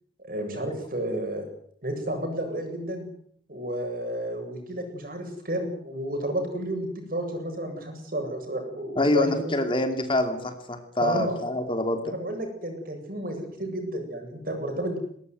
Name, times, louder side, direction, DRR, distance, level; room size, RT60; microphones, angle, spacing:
voice 1, 0.2-1.4 1.8-3.0 3.5-9.5 11.0-11.4 12.0-15.0, right 1 dB, 55° right, 4 dB, 8.0 m, -31 dB
voice 2, 9.0-12.0, left 1 dB, 30° left, 7 dB, 2.8 m, -26 dB
20.5 x 19.5 x 9.5 m, 0.65 s
head